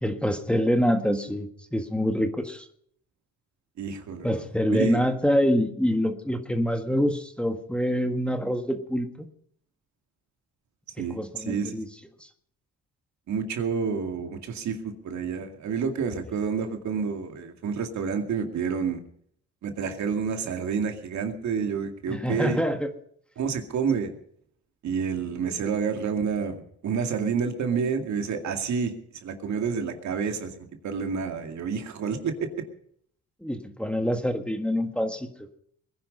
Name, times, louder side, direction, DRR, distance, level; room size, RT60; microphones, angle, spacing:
voice 1, 0.0-2.7 4.2-9.3 11.0-11.9 22.1-22.9 33.4-35.5, equal, 5° left, 5 dB, 1.6 m, -26 dB
voice 2, 3.8-5.0 11.0-11.8 13.3-19.0 19.6-22.6 23.4-24.1 24.8-28.9 29.2-32.5, right 6 dB, 65° right, 5 dB, 2.3 m, -29 dB
21.5 x 10.5 x 5.4 m, 0.64 s
cardioid pair, 90°, 30 cm